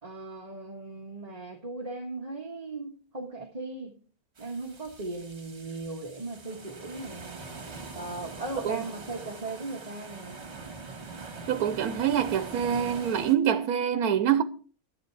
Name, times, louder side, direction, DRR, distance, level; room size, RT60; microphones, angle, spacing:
voice 1, 0.0-4.0 4.4-7.3 7.9-10.5, right 3 dB, 25° right, 1.7 m, -38 dB
sound 1, 4.4-13.4, right 3 dB, 50° right, 2.1 m, -43 dB
voice 2, 11.5-14.4, right 9 dB, 85° right, 1.2 m, -25 dB
12.5 x 11.0 x 4.7 m
omnidirectional pair, 1.5 m